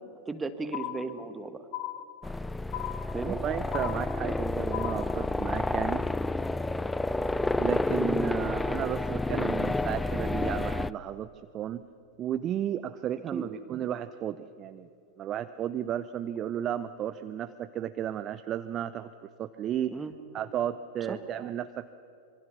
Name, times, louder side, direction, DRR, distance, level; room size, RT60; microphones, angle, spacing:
voice 1, 0.3-1.6 3.1-3.3 13.3-13.5 19.9-20.1 21.1-21.2, right 3 dB, 15° right, 10 dB, 1.6 m, -35 dB
sound 1, 0.7-1.4 1.7-2.4 2.7-3.4 3.7-4.4 4.7-5.4, left 14 dB, 45° left, 1.4 m, -37 dB
sound 2, 2.2-10.9, left 2 dB, 5° left, 0.5 m, -30 dB
voice 2, 3.2-6.1 7.6-11.3 11.5-11.9 12.2-14.9 15.2-19.9 20.3-21.9, right 10 dB, 30° right, 12 dB, 0.7 m, -33 dB
26.0 x 24.0 x 6.9 m, 2.7 s
figure-of-eight pair, 90°, 0 cm